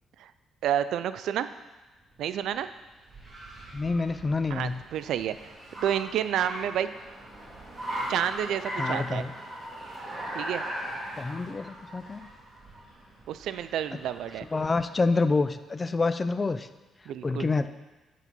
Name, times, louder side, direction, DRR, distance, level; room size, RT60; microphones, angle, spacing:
voice 1, 0.6-1.5 2.2-2.7 4.5-6.9 8.1-9.2 10.3-10.6 13.3-14.5 17.1-17.5, right 10 dB, 80° right, 13 dB, 0.3 m, -30 dB
Car, 2.1-15.0, right 1 dB, 20° right, 2.4 m, -39 dB
voice 2, 3.7-4.8 8.8-9.3 11.2-12.3 13.9-14.0 14.5-16.7 17.2-17.7, left 3 dB, 30° left, 11 dB, 0.4 m, -27 dB
8.2 x 4.0 x 6.0 m, 1.2 s
cardioid pair, 90°, 0 cm